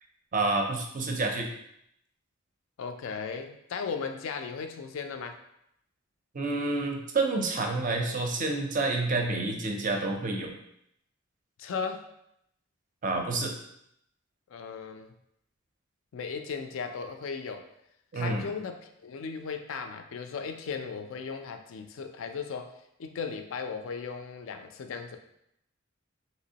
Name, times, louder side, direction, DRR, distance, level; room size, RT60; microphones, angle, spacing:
voice 1, 0.3-1.5 6.3-10.6 13.0-13.5 18.1-18.5, right 3 dB, 35° right, 2 dB, 0.4 m, -28 dB
voice 2, 2.8-5.4 11.6-12.1 14.5-15.1 16.1-17.7 18.1-22.7 23.0-25.2, left 5 dB, 65° left, 6 dB, 0.3 m, -36 dB
3.3 x 2.9 x 2.8 m, 0.76 s
head